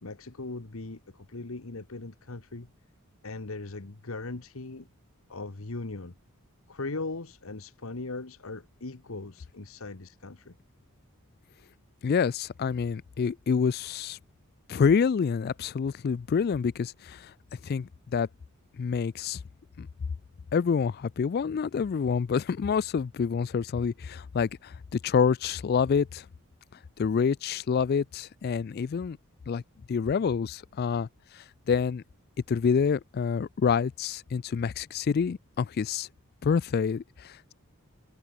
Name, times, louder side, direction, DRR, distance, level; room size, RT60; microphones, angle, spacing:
voice 1, 0.0-2.7 3.2-4.9 5.3-6.1 6.7-10.5, left 3 dB, 65° left, 1.2 m, -39 dB
voice 2, 12.0-14.2 14.7-17.3 17.6-18.3 18.8-19.4 19.8-19.9 20.5-26.3 27.0-29.2 29.5-29.6 29.9-31.1 31.3-32.0 32.5-36.1 36.4-37.5, left 6 dB, 45° left, 0.3 m, -27 dB
head